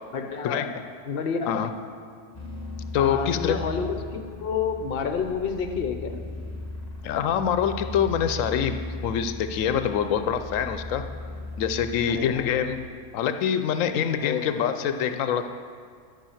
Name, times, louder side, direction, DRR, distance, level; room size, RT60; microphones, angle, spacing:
voice 1, 0.1-1.7 2.9-6.2 12.1-12.5 14.2-14.6, left 6 dB, 55° left, 6 dB, 0.9 m, -30 dB
sound 1, 2.3-12.9, left 2 dB, 15° left, 1.0 m, -37 dB
voice 2, 2.9-3.6 7.0-11.0 11.6-12.8 13.1-15.5, left 8 dB, 90° left, 9 dB, 1.0 m, -25 dB
11.5 x 5.6 x 7.2 m, 2.1 s
omnidirectional pair, 1.3 m